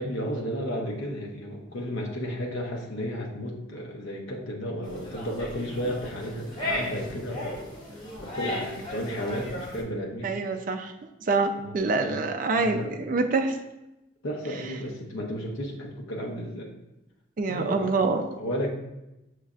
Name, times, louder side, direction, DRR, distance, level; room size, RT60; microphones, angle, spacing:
voice 1, 0.0-7.6 8.2-10.4 11.6-12.2 12.6-13.0 14.2-16.7 17.5-17.9 18.3-18.7, equal, 85° left, 0 dB, 0.7 m, -33 dB
sound 1, 4.8-9.8, left 1 dB, 25° left, 0.8 m, -35 dB
voice 2, 10.2-10.9 11.3-13.6 17.4-18.3, right 3 dB, 45° right, 6 dB, 0.4 m, -26 dB
6.5 x 3.2 x 2.4 m, 0.94 s
head